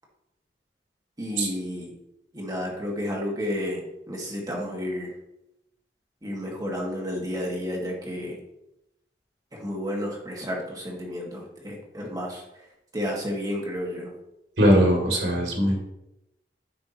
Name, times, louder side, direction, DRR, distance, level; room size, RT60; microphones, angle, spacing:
voice 1, 1.2-1.9 2.3-5.2 6.2-8.4 9.5-12.7 12.9-14.1, left 1 dB, 20° right, -2 dB, 1.8 m, -31 dB
voice 2, 14.6-15.8, equal, 80° right, -1 dB, 2.5 m, -20 dB
9.6 x 5.9 x 3.0 m, 0.86 s
head